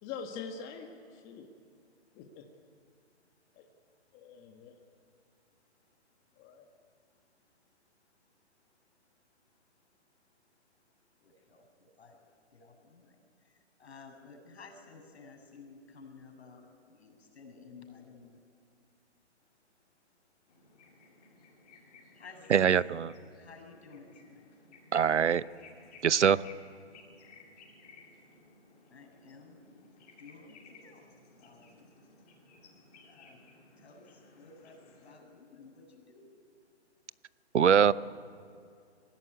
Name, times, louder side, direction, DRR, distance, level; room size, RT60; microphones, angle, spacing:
voice 1, 0.0-1.5 2.1-2.5 3.5-3.6 4.1-4.8 6.4-6.7 22.4-22.7, left 6 dB, 20° left, 3 dB, 1.6 m, -44 dB
voice 2, 11.2-12.2 12.5-13.2 13.8-18.4 22.2-23.1 23.3-24.5 28.9-29.7 30.2-31.1 31.4-31.9 33.0-33.4 33.8-36.3, left 4 dB, 65° left, 4 dB, 7.4 m, -53 dB
sound 1, 20.5-35.2, left 3 dB, 35° left, 7.2 m, -58 dB
voice 3, 22.5-23.1 24.9-25.4 26.0-26.4 37.5-37.9, right 7 dB, 80° right, 19 dB, 0.8 m, -23 dB
24.5 x 16.5 x 9.6 m, 2.4 s
hypercardioid pair, 145°, 34 cm